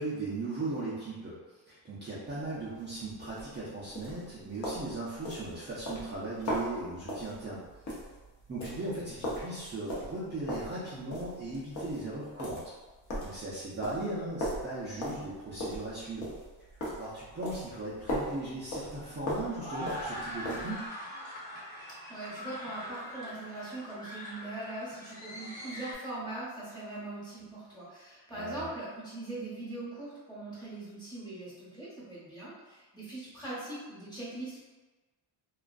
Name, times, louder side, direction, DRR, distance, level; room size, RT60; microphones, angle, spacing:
voice 1, 0.0-1.4 1.7-7.6 8.5-12.7 13.2-16.3 17.0-20.8 28.3-28.7, right 2 dB, 25° right, -9 dB, 0.4 m, -38 dB
sound 1, 2.4-20.8, equal, 40° left, 0.7 m, -39 dB
sound 2, 18.4-25.9, equal, 75° left, 1.1 m, -43 dB
voice 2, 21.7-34.6, right 2 dB, 10° left, -9 dB, 1.0 m, -41 dB
2.4 x 2.2 x 2.3 m, 1.2 s
cardioid pair, 125°, 46 cm